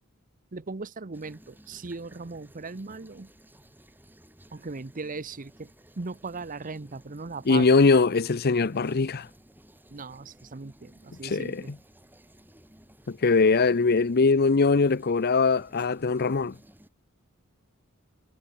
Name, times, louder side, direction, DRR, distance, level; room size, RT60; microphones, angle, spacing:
voice 1, 0.5-3.3 4.5-7.8 9.9-11.7, right 3 dB, 40° right, 0.8 m, -38 dB
sound 1, 1.1-16.9, right 1 dB, 10° right, 4.8 m, -55 dB
voice 2, 7.5-9.3 11.2-11.6 13.1-16.5, left 4 dB, 45° left, 0.6 m, -22 dB
head